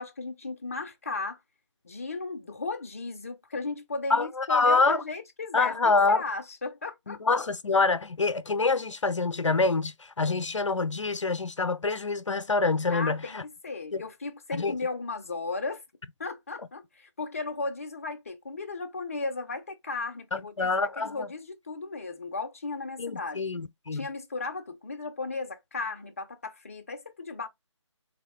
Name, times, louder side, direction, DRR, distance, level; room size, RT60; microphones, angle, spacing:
voice 1, 0.0-1.4 1.8-7.2 12.9-13.4 13.6-15.8 16.2-20.7 21.0-23.4 23.9-27.5, left 3 dB, 30° left, 0.6 m, -35 dB
voice 2, 4.1-5.0 5.5-6.2 7.1-13.4 13.9-14.0 14.5-14.7 20.3-21.3 23.0-24.1, left 3 dB, 70° left, 0.6 m, -26 dB
4.0 x 2.7 x 4.3 m
figure-of-eight pair, 160°, 16 cm